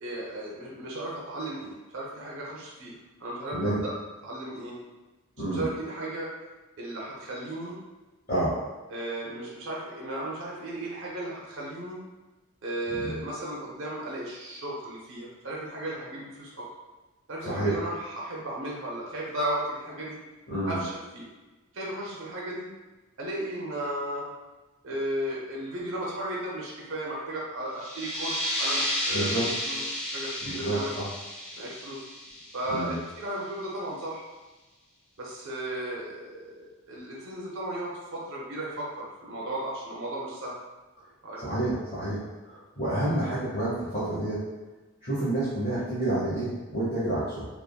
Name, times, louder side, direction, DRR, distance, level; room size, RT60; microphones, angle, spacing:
voice 1, 0.0-3.9 4.2-4.7 5.5-6.3 6.8-7.8 8.9-12.0 12.6-16.7 17.3-20.2 20.7-21.3 21.7-22.7 23.2-24.2 24.8-29.8 30.1-30.9 31.6-32.0 32.5-34.3 35.2-40.6 41.2-41.6, right 1 dB, 60° right, -4 dB, 0.6 m, -35 dB
voice 2, 3.5-3.8 5.4-5.7 8.3-8.6 12.9-13.2 17.4-17.8 20.5-20.8 29.1-29.5 30.4-31.1 32.7-33.0 41.4-44.5 45.0-47.5, right 1 dB, 40° left, -12 dB, 0.9 m, -29 dB
sound 1, 27.7-33.1, left 1 dB, 5° left, 0.5 m, -32 dB
3.4 x 2.1 x 2.2 m, 1.2 s
head